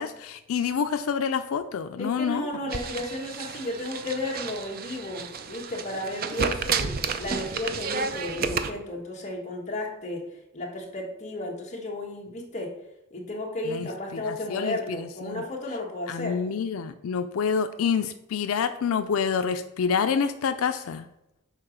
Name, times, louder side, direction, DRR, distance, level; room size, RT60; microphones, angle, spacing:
voice 1, 0.0-2.5 13.7-13.9 14.2-15.4 16.1-21.1, left 6 dB, 85° left, 9 dB, 0.4 m, -27 dB
voice 2, 2.0-10.3 10.5-12.8 13.1-16.4, left 1 dB, 35° left, -1 dB, 1.3 m, -33 dB
sound 1, 2.7-8.7, right 5 dB, 45° right, 0.5 m, -31 dB
6.5 x 3.9 x 5.0 m, 0.87 s
head